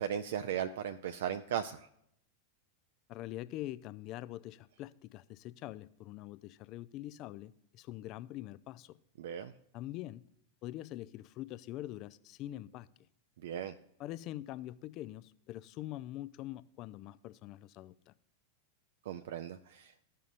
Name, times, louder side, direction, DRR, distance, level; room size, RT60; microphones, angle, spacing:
voice 1, 0.0-1.9 9.2-9.5 13.4-13.7 19.1-19.9, right 9 dB, 55° right, 0.4 m, -37 dB
voice 2, 3.1-9.0 9.7-10.2 10.6-12.9 14.0-18.1, left 14 dB, 40° left, 0.4 m, -44 dB
14.5 x 5.6 x 2.5 m
figure-of-eight pair, 90°, 0 cm